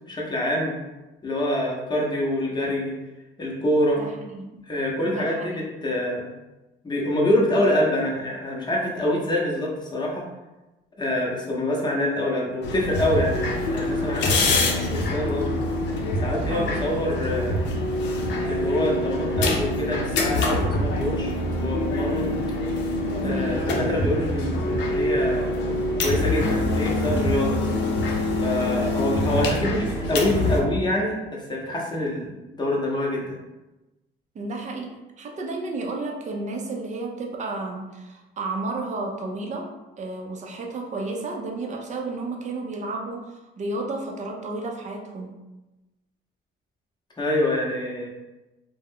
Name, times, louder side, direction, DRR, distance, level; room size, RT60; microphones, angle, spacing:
voice 1, 0.1-0.7 1.2-2.9 3.4-4.0 4.7-6.3 6.8-10.3 11.0-15.6 16.2-17.6 18.5-21.3 21.6-22.3 23.2-25.5 26.0-27.6 28.4-33.2 47.2-48.1, left 1 dB, 25° left, -3 dB, 0.7 m, -26 dB
voice 2, 4.0-4.5 5.0-5.7 16.5-16.9 23.1-23.6 34.3-34.9 35.2-39.7 40.0-45.3, right 2 dB, 40° right, 1 dB, 0.5 m, -32 dB
sound 1, 12.6-30.6, left 1 dB, 65° left, 0.6 m, -25 dB
2.3 x 2.1 x 3.5 m, 1.1 s
cardioid pair, 110°, 19 cm